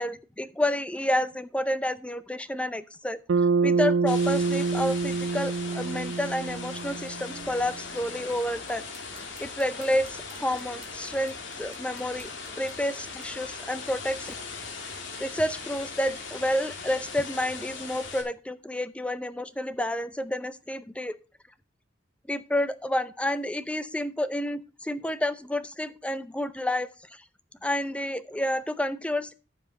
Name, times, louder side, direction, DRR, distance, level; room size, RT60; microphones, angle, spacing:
voice 1, 0.0-3.2 3.6-8.9 9.2-12.3 12.6-14.3 15.2-21.1 22.3-27.2 27.6-29.3, left 1 dB, 5° left, 13 dB, 0.5 m, -30 dB
Bass guitar, 3.3-7.7, right 4 dB, 85° right, 0.6 m, -26 dB
sound 1, 4.1-18.2, left 4 dB, 80° left, 2.1 m, -39 dB
sound 2, 6.3-13.3, right 4 dB, 30° right, 2.1 m, -54 dB
14.5 x 5.4 x 3.8 m, 0.34 s
head